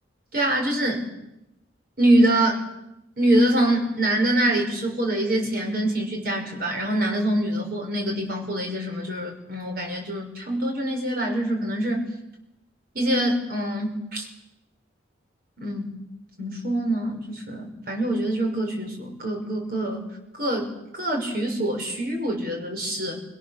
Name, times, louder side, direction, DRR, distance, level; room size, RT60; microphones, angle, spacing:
voice 1, 0.3-1.0 2.0-2.6 3.2-12.0 12.9-14.3 15.6-15.9 16.4-20.0 20.4-23.2, right 1 dB, 50° right, 1 dB, 5.9 m, -24 dB
26.0 x 25.5 x 6.7 m, 0.89 s
head